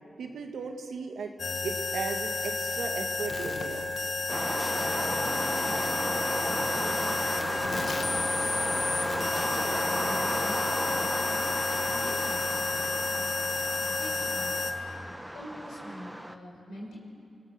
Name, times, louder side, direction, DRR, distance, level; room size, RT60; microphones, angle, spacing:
voice 1, 0.2-1.3 1.6-3.9, right 5 dB, 80° right, 4 dB, 2.0 m, -36 dB
sound 1, 1.4-14.7, left 3 dB, 65° left, 1.9 m, -31 dB
sound 2, 4.3-16.4, right 1 dB, 10° right, 1.3 m, -33 dB
voice 2, 6.7-9.5 9.8-11.1 11.7-13.3 13.9-14.8 15.3-17.0, left 1 dB, 85° left, -3 dB, 6.3 m, -46 dB
29.0 x 17.5 x 7.0 m, 2.6 s
cardioid pair, 45°, 0 cm